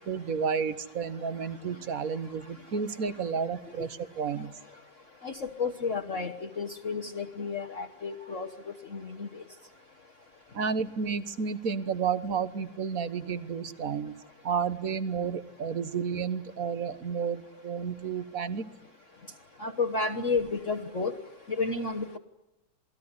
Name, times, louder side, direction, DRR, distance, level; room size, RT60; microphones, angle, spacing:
voice 1, 0.1-4.5 10.5-14.1 14.4-18.7, right 6 dB, 45° right, 12 dB, 1.6 m, -31 dB
voice 2, 5.2-8.5 8.9-9.4 19.6-21.1 21.5-22.2, left 4 dB, 40° left, 1 dB, 1.5 m, -31 dB
28.0 x 19.5 x 9.8 m, 0.96 s
omnidirectional pair, 2.1 m